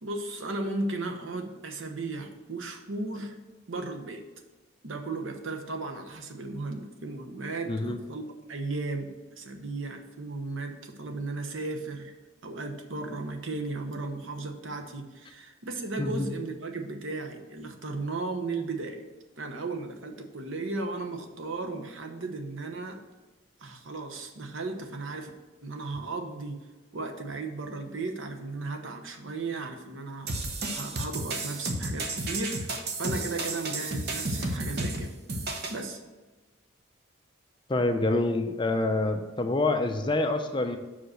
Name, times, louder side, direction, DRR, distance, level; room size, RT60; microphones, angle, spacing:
voice 1, 0.0-3.4 3.7-4.3 4.8-12.1 12.4-19.0 19.3-23.0 23.6-25.3 25.6-26.6 26.9-30.3 30.7-35.2 35.7-36.0, right 3 dB, 80° right, 5 dB, 0.9 m, -35 dB
voice 2, 7.7-8.0 16.0-16.3 37.7-40.8, left 2 dB, 25° left, 6 dB, 0.5 m, -26 dB
sound 1, 30.3-35.8, right 2 dB, 50° right, 0.8 m, -32 dB
5.6 x 4.9 x 6.3 m, 1.2 s
head